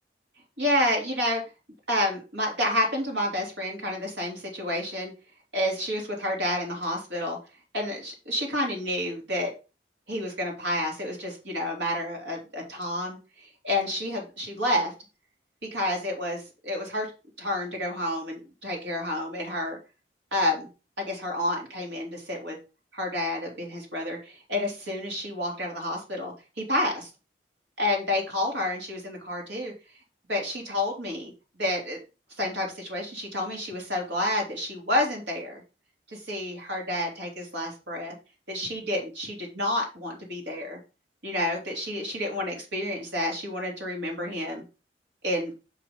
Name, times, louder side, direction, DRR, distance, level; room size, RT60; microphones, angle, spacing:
voice 1, 0.6-1.4 1.9-5.1 5.5-7.4 7.7-9.5 10.1-13.2 13.6-14.9 15.7-17.1 17.4-19.8 20.3-20.7 21.0-22.6 22.9-27.1 27.8-29.7 30.3-31.3 31.6-32.0 32.4-35.6 36.1-38.1 38.5-40.8 41.2-44.6 45.2-45.5, left 1 dB, 80° right, 0 dB, 3.0 m, -29 dB
5.9 x 5.2 x 5.2 m, 0.32 s
head